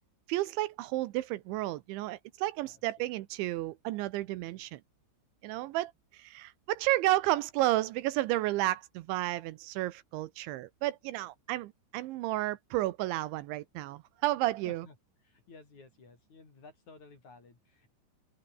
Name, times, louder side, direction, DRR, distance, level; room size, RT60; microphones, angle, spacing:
voice 1, 0.3-4.8 5.4-14.9, right 16 dB, 80° right, 3.2 m, -32 dB
voice 2, 15.2-17.9, left 3 dB, 40° left, 7.0 m, -54 dB
open air
omnidirectional pair, 5.4 m